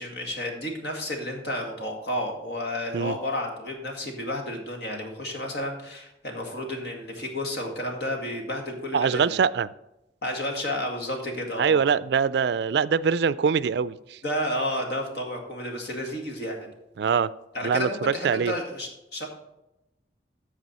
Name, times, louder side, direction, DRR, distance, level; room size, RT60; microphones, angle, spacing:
voice 1, 0.0-9.3 10.2-11.8 14.2-16.7 17.5-19.3, left 1 dB, 60° left, 2 dB, 2.0 m, -31 dB
voice 2, 8.9-9.7 11.6-14.2 17.0-17.3 17.6-17.9 18.2-18.5, right 6 dB, 65° right, 16 dB, 0.3 m, -23 dB
14.0 x 4.9 x 4.2 m, 0.91 s
head